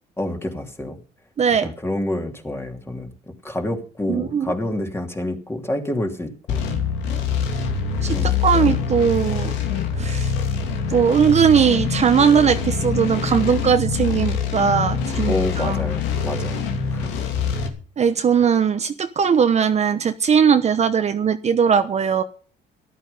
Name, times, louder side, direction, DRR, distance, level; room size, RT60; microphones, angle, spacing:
voice 1, 0.2-1.0 1.6-6.7 8.1-8.8 15.3-17.1, left 1 dB, 15° left, 3 dB, 3.0 m, -28 dB
voice 2, 1.4-1.7 4.1-4.5 8.0-9.5 10.0-10.3 10.9-15.7 18.0-22.2, right 7 dB, 35° right, 8 dB, 1.0 m, -19 dB
sound 1, 6.5-17.7, left 6 dB, 90° left, 2.8 m, -24 dB
14.0 x 12.0 x 5.5 m, 0.40 s
cardioid pair, 105°, 19 cm